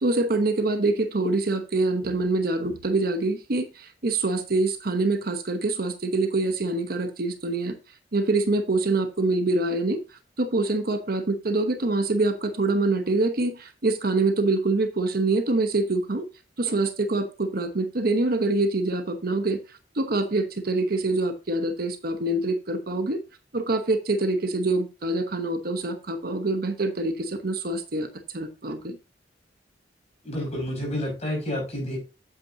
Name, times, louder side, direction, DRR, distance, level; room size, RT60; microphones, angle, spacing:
voice 1, 0.0-7.7 8.1-10.0 10.4-16.3 16.6-19.6 19.9-23.2 23.5-28.1 28.3-29.0, right 2 dB, 55° right, 8 dB, 1.0 m, -25 dB
voice 2, 30.2-32.0, left 1 dB, 40° left, -1 dB, 5.5 m, -29 dB
8.8 x 8.1 x 2.8 m, 0.31 s
head